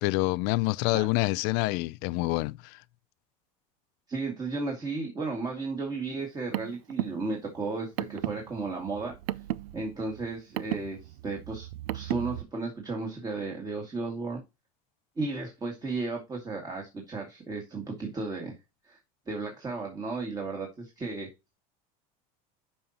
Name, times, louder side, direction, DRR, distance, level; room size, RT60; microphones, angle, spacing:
voice 1, 0.0-2.8, left 22 dB, 65° left, 0.4 m, -27 dB
voice 2, 4.1-9.2 9.7-11.7 11.9-14.4 15.2-18.6 18.8-19.0 19.3-21.3, right 3 dB, 20° right, 2.1 m, -34 dB
Car, 6.2-12.4, right 16 dB, 80° right, 0.5 m, -36 dB
11.0 x 5.4 x 2.9 m
supercardioid pair, 130°, 18 cm